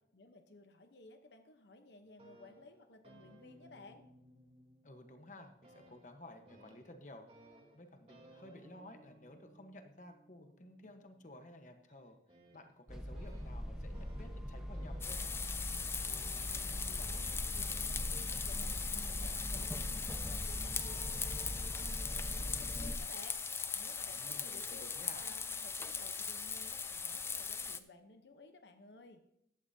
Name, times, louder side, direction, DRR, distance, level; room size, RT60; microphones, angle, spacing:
voice 1, 0.1-4.1 16.4-17.3 17.5-29.2, left 3 dB, 75° left, 7 dB, 0.9 m, -57 dB
sound 1, 2.0-5.3 5.6-17.2 18.0-18.9 19.6-19.9, right 1 dB, 35° right, 3.1 m, -63 dB
voice 2, 4.8-7.3 7.7-12.2 12.5-15.5 24.1-25.4, left 1 dB, 45° left, 6 dB, 1.1 m, -54 dB
sound 2, 12.9-23.0, equal, 5° right, 0.9 m, -42 dB
sound 3, 15.0-27.8, left 5 dB, 15° left, 0.3 m, -40 dB
15.0 x 11.5 x 2.8 m, 0.78 s
head